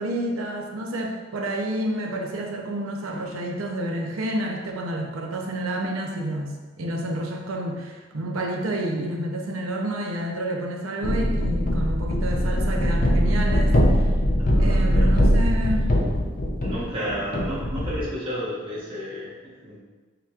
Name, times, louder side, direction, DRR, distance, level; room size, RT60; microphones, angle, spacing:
voice 1, 0.0-14.1 14.6-16.0, right 1 dB, 90° right, 1 dB, 0.6 m, -29 dB
sound 1, 11.0-18.1, equal, 40° left, 0.5 m, -21 dB
voice 2, 14.4-15.1 16.6-19.8, equal, 25° right, -10 dB, 0.8 m, -32 dB
6.6 x 3.0 x 2.4 m, 1.3 s
head